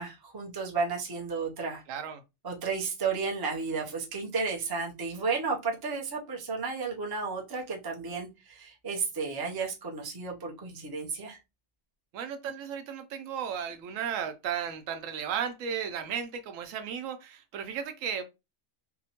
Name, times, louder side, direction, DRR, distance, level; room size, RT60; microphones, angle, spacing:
voice 1, 0.0-1.8 2.4-11.4, right 4 dB, 30° right, 0.5 m, -33 dB
voice 2, 1.9-2.2 12.1-18.2, right 8 dB, 85° right, 1.0 m, -34 dB
2.7 x 2.1 x 2.8 m
omnidirectional pair, 1.3 m